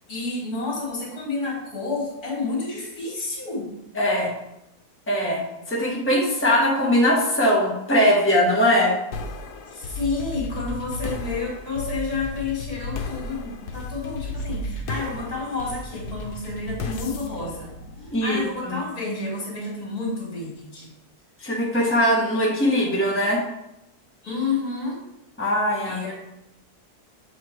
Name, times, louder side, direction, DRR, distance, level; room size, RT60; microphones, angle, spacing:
voice 1, 0.1-3.7 9.7-20.9 24.2-25.0 25.8-26.1, left 3 dB, 70° left, -2 dB, 2.4 m, -30 dB
voice 2, 3.9-4.3 5.1-5.4 5.7-9.0 18.1-18.8 21.4-23.4 25.4-26.0, equal, 10° left, -4 dB, 1.5 m, -21 dB
sound 1, 9.1-18.6, left 2 dB, 90° left, 1.3 m, -34 dB
7.1 x 4.0 x 4.6 m, 0.88 s
omnidirectional pair, 1.6 m